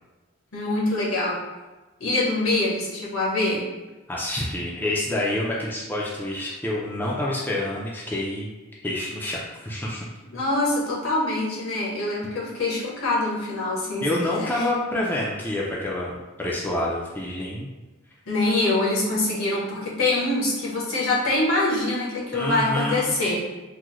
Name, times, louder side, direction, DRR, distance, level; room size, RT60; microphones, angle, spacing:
voice 1, 0.5-1.4 2.0-3.6 10.3-14.7 18.3-23.4, left 2 dB, 80° left, -5 dB, 1.0 m, -24 dB
voice 2, 4.1-8.5 8.8-10.1 14.0-17.7 22.3-23.2, left 1 dB, 10° left, -5 dB, 0.3 m, -27 dB
3.6 x 2.1 x 3.0 m, 1.2 s
head